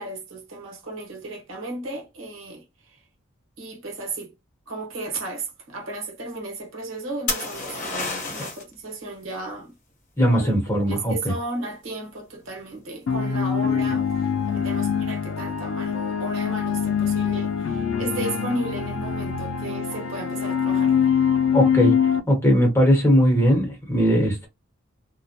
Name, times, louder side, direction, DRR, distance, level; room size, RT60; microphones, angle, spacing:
voice 1, 0.0-3.0 3.6-4.3 4.7-9.7 10.3-21.0, right 2 dB, 90° right, 1.0 m, -34 dB
sound 1, 7.3-8.7 12.4-12.9, left 3 dB, 40° left, 0.9 m, -29 dB
voice 2, 10.2-11.1 21.5-22.0 22.3-24.5, equal, 15° left, 1.1 m, -19 dB
sound 2, 13.1-22.2, left 7 dB, 90° left, 0.4 m, -24 dB
2.2 x 2.1 x 2.7 m
head